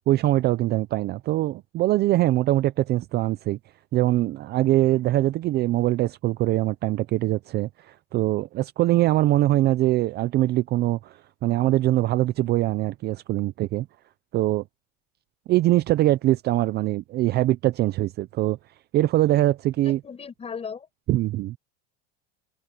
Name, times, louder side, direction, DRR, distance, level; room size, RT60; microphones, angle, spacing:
voice 1, 0.0-3.6 3.9-13.9 14.3-14.6 15.5-18.6 18.9-20.0 21.1-21.6, right 15 dB, 35° right, 0.5 m, -23 dB
voice 2, 19.8-20.9, left 6 dB, 20° left, 6.6 m, -36 dB
cardioid pair, 155°, 29 cm